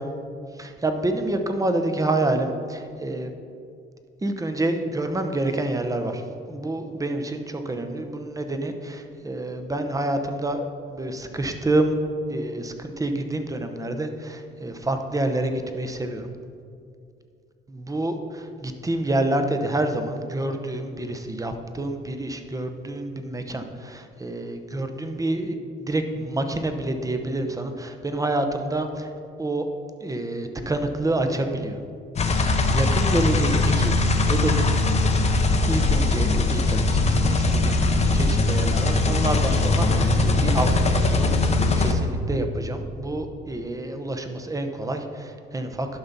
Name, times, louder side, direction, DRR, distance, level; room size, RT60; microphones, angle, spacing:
voice 1, 0.6-3.3 4.2-6.2 6.5-12.0 12.3-16.3 17.7-29.1 29.4-29.7 30.0-31.8 32.4-34.0 34.2-34.7 35.7-41.5 41.8-45.9, right 1 dB, 15° right, 6 dB, 0.8 m, -28 dB
sound 1, 32.2-41.9, left 2 dB, 35° left, 0.8 m, -21 dB
11.5 x 5.6 x 4.0 m, 2.3 s
cardioid pair, 90°, 20 cm